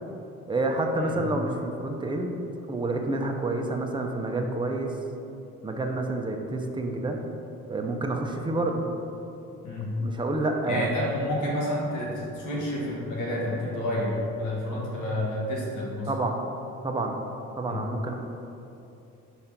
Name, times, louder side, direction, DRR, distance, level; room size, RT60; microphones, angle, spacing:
voice 1, 0.5-2.3 2.7-4.9 5.6-7.2 7.7-8.8 10.0-10.9 16.1-16.4 16.8-17.2 17.6-18.1, right 2 dB, 15° right, 2 dB, 0.7 m, -28 dB
voice 2, 9.6-10.0 10.7-16.1 17.7-17.8, left 1 dB, 85° left, -4 dB, 1.5 m, -30 dB
5.0 x 4.2 x 5.8 m, 2.8 s
cardioid pair, 90°, 30 cm